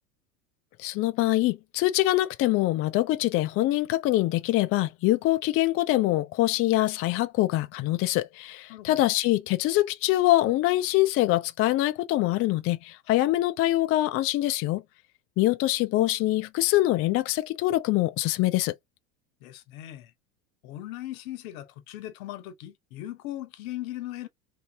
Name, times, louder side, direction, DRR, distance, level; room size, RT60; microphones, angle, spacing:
voice 1, 0.8-14.8 15.4-18.7, left 16 dB, 35° left, 0.4 m, -24 dB
voice 2, 8.7-9.0 19.4-20.1 20.6-24.3, left 14 dB, 70° left, 0.9 m, -38 dB
3.2 x 2.6 x 2.7 m
hypercardioid pair, 95°, 43 cm